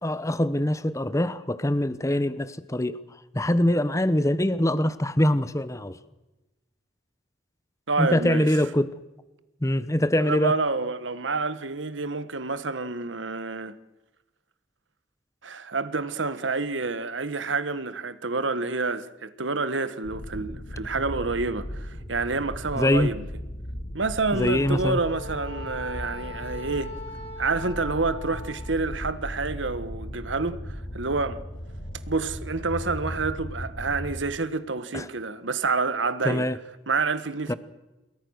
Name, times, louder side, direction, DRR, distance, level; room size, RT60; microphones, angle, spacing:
voice 1, 0.0-3.0 3.3-6.0 8.0-8.9 9.6-10.5 22.8-23.1 24.3-25.0 34.9-35.1 36.2-36.6 37.5-37.6, left 1 dB, 15° left, 1.0 m, -23 dB
voice 2, 7.9-8.5 10.2-13.7 15.4-23.2 23.9-27.0 27.4-30.6 30.9-31.4 32.1-36.5 36.9-37.5, right 3 dB, 90° right, 1.5 m, -28 dB
sound 1, 20.0-34.2, equal, 65° left, 6.1 m, -37 dB
Wind instrument woodwind instrument, 24.3-28.8, left 3 dB, 30° left, 4.5 m, -42 dB
28.5 x 22.0 x 6.5 m
head